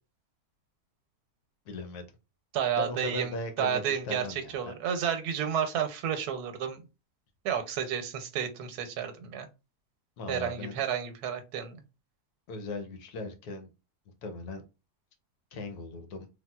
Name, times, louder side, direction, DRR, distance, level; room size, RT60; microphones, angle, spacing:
voice 1, 1.7-2.1 2.7-4.7 10.2-10.8 12.5-13.7 14.2-14.6 15.5-16.3, left 2 dB, 80° left, 1.2 m, -38 dB
voice 2, 2.5-6.8 7.4-9.5 10.3-11.8, right 8 dB, 90° right, 1.2 m, -31 dB
3.4 x 2.3 x 2.2 m
omnidirectional pair, 1.6 m